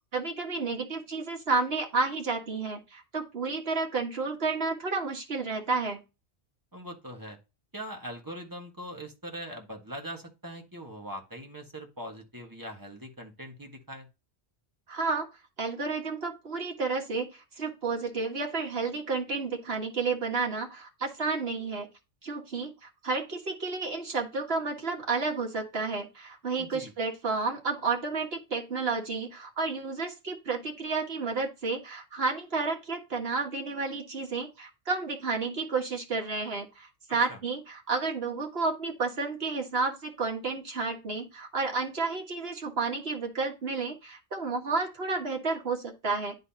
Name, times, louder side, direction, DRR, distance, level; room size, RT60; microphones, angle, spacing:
voice 1, 0.1-6.0 14.9-15.3 15.6-21.9 22.2-46.4, right 4 dB, 65° right, 1 dB, 1.9 m, -31 dB
voice 2, 6.7-7.4 7.7-14.1 26.6-26.9 37.3-37.4, equal, 20° right, 2 dB, 1.5 m, -41 dB
11.0 x 4.0 x 2.8 m, 0.27 s
omnidirectional pair, 1.1 m